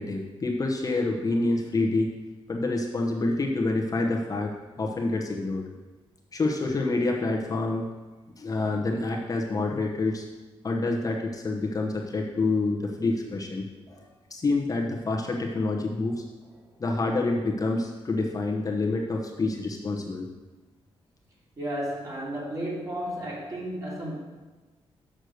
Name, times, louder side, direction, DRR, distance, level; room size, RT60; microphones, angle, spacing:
voice 1, 0.0-2.1 2.5-4.5 4.8-5.6 6.3-7.9 8.4-10.3 10.6-14.0 14.3-16.2 16.8-20.3, left 2 dB, 35° left, 0 dB, 1.0 m, -27 dB
voice 2, 21.6-24.1, equal, 35° right, -5 dB, 3.2 m, -33 dB
6.5 x 6.4 x 6.5 m, 1.2 s
cardioid pair, 110°, 10 cm